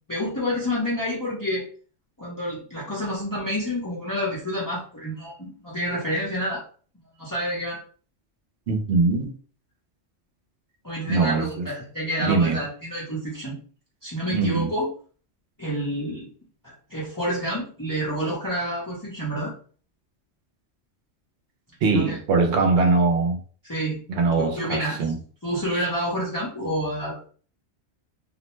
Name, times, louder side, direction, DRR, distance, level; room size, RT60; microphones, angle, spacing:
voice 1, 0.1-1.6 2.2-6.6 7.2-7.8 10.8-13.6 14.0-14.9 15.6-16.3 16.6-19.5 21.9-22.2 23.6-24.0 24.3-25.0 25.4-27.2, equal, 20° left, 0.7 m, -28 dB
voice 2, 8.7-9.3 11.1-11.7 12.2-12.6 14.3-14.7 21.8-23.4 24.1-25.2 25.7-25.9, right 3 dB, 75° right, 0.8 m, -22 dB
2.4 x 2.1 x 3.1 m
omnidirectional pair, 1.2 m